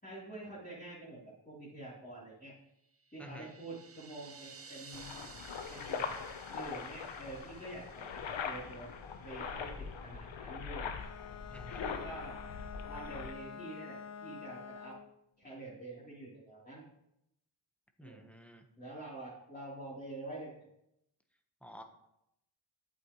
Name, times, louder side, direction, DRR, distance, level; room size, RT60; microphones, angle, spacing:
voice 1, 0.0-2.5 3.1-5.1 5.7-6.1 6.5-8.9 9.2-10.9 11.8-12.4 12.8-15.0 15.4-16.8 18.0-18.3 18.8-20.6, right 2 dB, 20° left, -10 dB, 3.4 m, -47 dB
sound 1, 2.9-9.1, right 5 dB, 30° right, 0.7 m, -55 dB
voice 2, 3.2-3.5 11.5-11.9 18.0-18.6 21.6-21.8, equal, 5° left, 4 dB, 1.2 m, -51 dB
sound 2, 4.9-13.3, left 6 dB, 65° left, 1.0 m, -42 dB
Bowed string instrument, 10.9-15.2, left 7 dB, 35° left, 0.5 m, -48 dB
8.5 x 7.8 x 3.1 m, 0.81 s
cardioid pair, 60°, 48 cm